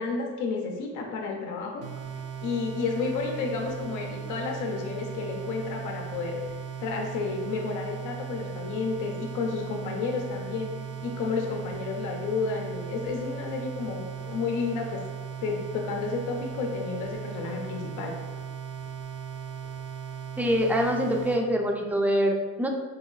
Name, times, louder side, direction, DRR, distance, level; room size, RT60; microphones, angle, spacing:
voice 1, 0.0-1.9 2.4-6.4 6.8-10.7 11.0-15.0 15.4-18.2, left 4 dB, 90° left, 1 dB, 0.6 m, -31 dB
sound 1, 1.8-21.4, right 7 dB, 50° right, 0.8 m, -38 dB
voice 2, 20.4-22.7, equal, 5° right, 2 dB, 0.4 m, -24 dB
3.8 x 2.9 x 2.3 m, 1.4 s
cardioid pair, 90°, 30 cm